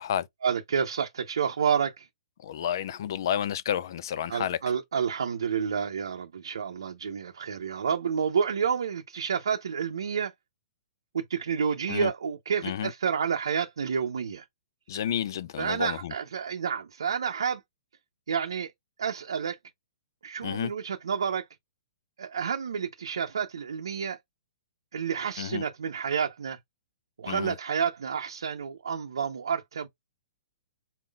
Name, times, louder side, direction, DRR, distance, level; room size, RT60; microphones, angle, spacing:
voice 1, 0.4-2.1 4.3-10.3 11.1-14.4 15.6-17.6 18.3-18.7 19.0-19.6 20.2-21.4 22.2-24.2 24.9-26.6 27.2-29.9, right 7 dB, 85° right, 0.7 m, -29 dB
voice 2, 2.4-4.6 11.9-12.1 12.6-12.9 14.9-16.1 20.4-20.7 25.4-25.6 27.3-27.6, left 10 dB, 60° left, 0.5 m, -30 dB
4.1 x 3.8 x 2.3 m
hypercardioid pair, 140°, 2 cm